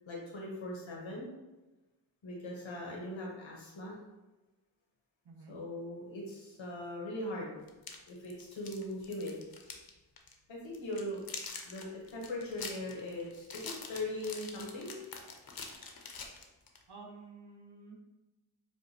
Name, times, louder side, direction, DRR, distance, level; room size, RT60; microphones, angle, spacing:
voice 1, 0.1-1.3 2.2-4.0 5.5-7.5 8.1-9.4 10.5-11.2 11.6-14.9, left 1 dB, 80° left, -3 dB, 0.9 m, -40 dB
sound 1, 7.7-9.9 10.2-10.3 10.7-16.8, left 4 dB, 50° left, 0.6 m, -45 dB
voice 2, 16.9-18.0, right 4 dB, 55° right, -1 dB, 1.0 m, -51 dB
4.7 x 2.2 x 2.6 m, 1.1 s
cardioid pair, 40°, 46 cm